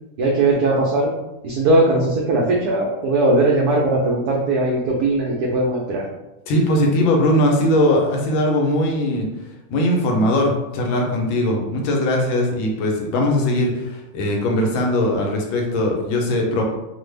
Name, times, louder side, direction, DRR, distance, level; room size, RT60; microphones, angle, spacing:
voice 1, 0.2-1.1 1.4-6.0, right 2 dB, 90° right, -2 dB, 0.8 m, -19 dB
voice 2, 6.5-9.3 9.7-16.6, left 1 dB, 80° left, 1 dB, 1.4 m, -20 dB
3.3 x 2.2 x 3.2 m, 0.97 s
omnidirectional pair, 2.2 m